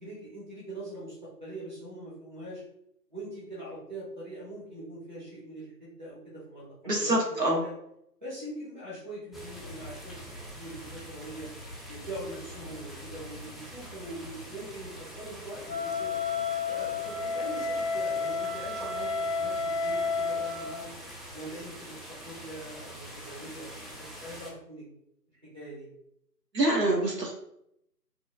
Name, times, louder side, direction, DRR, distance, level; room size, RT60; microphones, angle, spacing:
voice 1, 0.0-2.6 3.1-7.7 8.2-10.2 10.5-11.5 11.9-16.1 16.7-20.9 21.3-24.8 25.5-25.9, right 1 dB, 30° right, -8 dB, 0.7 m, -42 dB
voice 2, 6.9-7.6 26.5-27.3, right 1 dB, 80° right, -1 dB, 0.9 m, -25 dB
sound 1, 9.3-24.5, equal, ahead, 0.3 m, -44 dB
Wind instrument woodwind instrument, 15.7-20.7, left 4 dB, 35° left, 0.7 m, -31 dB
2.9 x 2.2 x 2.2 m, 0.76 s
figure-of-eight pair, 160°, 49 cm